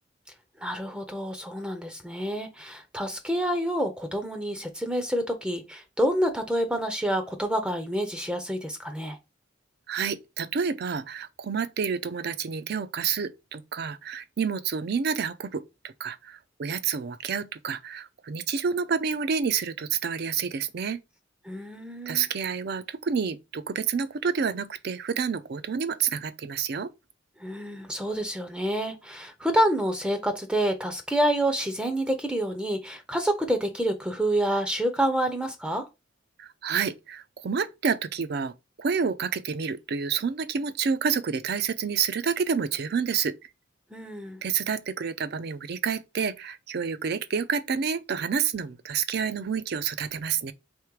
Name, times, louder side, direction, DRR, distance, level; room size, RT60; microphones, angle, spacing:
voice 1, 0.6-9.2 21.5-22.2 27.4-35.9 43.9-44.4, right 1 dB, 5° right, 0.5 m, -28 dB
voice 2, 9.9-21.0 22.1-26.9 36.4-38.5 38.8-43.5 44.4-50.5, right 6 dB, 55° right, 0.4 m, -29 dB
3.6 x 3.2 x 4.6 m
head